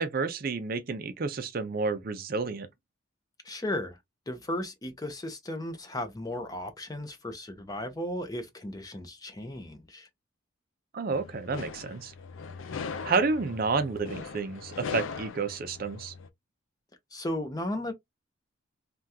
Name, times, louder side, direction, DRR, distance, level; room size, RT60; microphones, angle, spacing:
voice 1, 0.0-2.7 10.9-12.1 13.0-16.1, right 4 dB, 45° right, 0.5 m, -30 dB
voice 2, 3.4-4.0 4.3-10.1 17.1-17.9, left 1 dB, 20° left, 0.5 m, -35 dB
sound 1, 11.1-16.3, left 5 dB, 75° left, 0.4 m, -40 dB
3.4 x 2.2 x 2.7 m
head